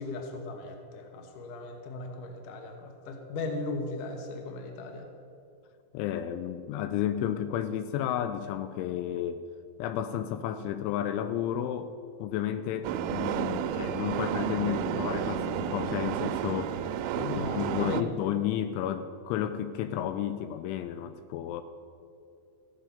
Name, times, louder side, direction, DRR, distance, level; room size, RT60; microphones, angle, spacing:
voice 1, 0.0-5.1 17.3-18.1, left 2 dB, 70° left, 4 dB, 2.0 m, -37 dB
voice 2, 5.9-9.4 9.8-11.9 12.2-16.8 17.1-21.6, left 10 dB, 85° left, 11 dB, 2.9 m, -32 dB
sound 1, 12.8-18.0, right 9 dB, 85° right, 3.0 m, -31 dB
15.5 x 9.6 x 5.4 m, 2.6 s
omnidirectional pair, 5.6 m